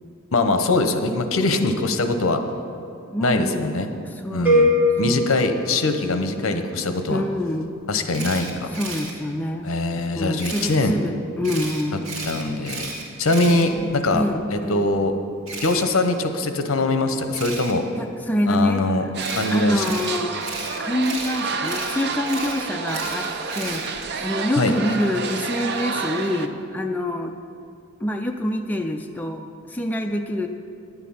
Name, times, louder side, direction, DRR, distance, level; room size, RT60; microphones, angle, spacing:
voice 1, 0.3-2.4 3.2-3.9 4.3-7.2 7.9-8.7 9.6-10.9 12.3-12.9 13.2-14.2 14.5-15.1 15.6-17.8 18.5-19.0 19.4-19.9 24.6-24.7, left 2 dB, 70° left, 7 dB, 0.8 m, -22 dB
voice 2, 3.1-3.7 4.0-4.6 5.0-5.3 7.1-7.8 8.7-9.7 10.1-12.2 13.3-14.9 18.0-19.1 19.5-20.5 20.8-27.3 28.0-29.4 29.7-30.5, left 1 dB, 10° left, 3 dB, 0.3 m, -26 dB
sound 1, 4.4-6.5, left 1 dB, 10° right, 1.6 m, -21 dB
Camera, 8.1-9.1 10.4-10.8 11.4-14.2 15.5-15.8 17.3-17.7 19.2-24.1, right 2 dB, 80° right, 2.0 m, -34 dB
sound 2, 19.1-26.5, right 4 dB, 50° right, 0.6 m, -29 dB
11.0 x 8.3 x 5.5 m, 2.5 s
head